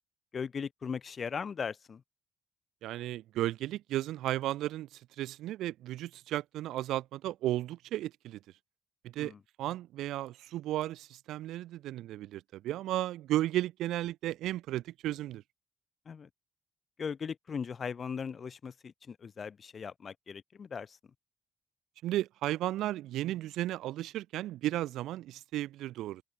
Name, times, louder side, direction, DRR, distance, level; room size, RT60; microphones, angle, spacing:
voice 1, 0.3-2.0 9.2-9.4 16.1-16.3 17.0-21.0, left 6 dB, 45° left, 0.5 m, -38 dB
voice 2, 2.8-8.4 9.1-9.3 9.6-15.4 22.0-26.2, right 14 dB, 85° right, 0.3 m, -34 dB
cardioid pair, 90°, 0 cm